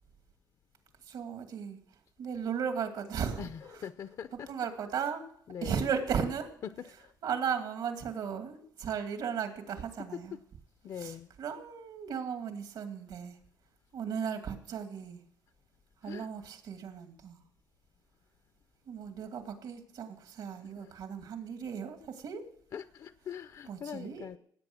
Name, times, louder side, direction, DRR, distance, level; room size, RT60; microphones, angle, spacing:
voice 1, 1.1-1.8 2.2-3.8 4.5-5.3 5.6-6.5 7.2-10.4 11.0-13.4 13.9-15.2 16.0-17.4 18.9-22.4 23.7-24.3, right 7 dB, 80° right, 2.5 m, -36 dB
voice 2, 3.4-4.5 5.5-5.8 6.8-7.1 10.8-11.3 16.0-16.3 20.8-20.9 22.7-24.4, left 8 dB, 55° left, 0.5 m, -42 dB
18.0 x 8.8 x 6.2 m
wide cardioid pair, 160°, 7 cm